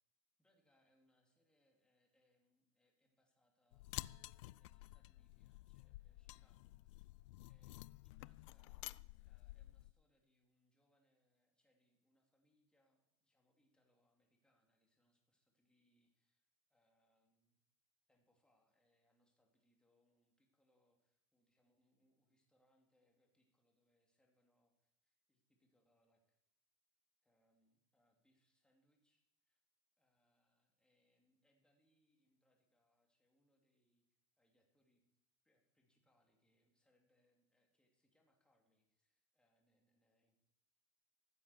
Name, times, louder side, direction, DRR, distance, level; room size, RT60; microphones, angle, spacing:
voice 1, 0.4-7.1 7.4-17.6 18.1-26.4 27.2-29.6 30.0-34.0 34.4-35.0 35.4-40.4, left 1 dB, 5° left, 1 dB, 2.7 m, -81 dB
sound 1, 3.7-9.9, left 19 dB, 65° left, 0.4 m, -52 dB
14.5 x 7.8 x 7.0 m, 0.83 s
supercardioid pair, 135°, 17 cm